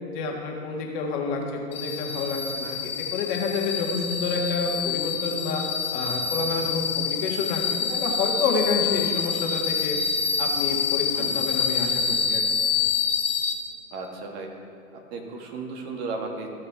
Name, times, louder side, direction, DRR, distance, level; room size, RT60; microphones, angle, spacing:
voice 1, 0.1-5.6 5.9-10.0 10.4-12.4, left 4 dB, 40° left, 0 dB, 1.6 m, -29 dB
sound 1, 1.7-13.5, left 6 dB, 15° left, 0.5 m, -27 dB
voice 2, 13.9-14.5 14.9-16.5, right 3 dB, 45° right, 2 dB, 1.4 m, -35 dB
14.5 x 5.6 x 3.4 m, 2.5 s
hypercardioid pair, 115°, 43 cm